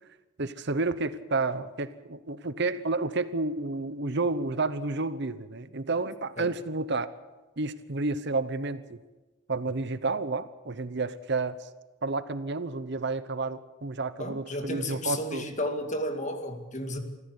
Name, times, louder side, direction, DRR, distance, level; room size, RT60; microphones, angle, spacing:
voice 1, 0.4-7.1 7.6-9.0 9.5-11.7 12.0-15.4, right 3 dB, 55° right, 13 dB, 0.9 m, -30 dB
voice 2, 14.2-17.0, left 1 dB, 35° left, 6 dB, 2.3 m, -33 dB
26.0 x 14.5 x 8.3 m, 1.2 s
head